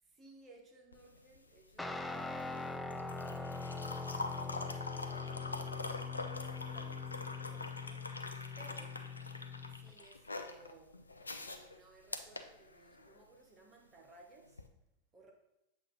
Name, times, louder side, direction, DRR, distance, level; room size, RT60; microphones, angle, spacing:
voice 1, 0.1-6.0 6.2-9.0 9.7-11.1 11.4-14.6 15.1-15.3, right 2 dB, 20° right, 0 dB, 1.0 m, -60 dB
sound 1, 0.9-13.2 14.5-14.7, left 3 dB, 80° left, 0.4 m, -45 dB
Guitar, 1.8-9.9, left 4 dB, 5° left, 0.3 m, -42 dB
7.3 x 2.5 x 5.2 m, 0.91 s
figure-of-eight pair, 90°, 0 cm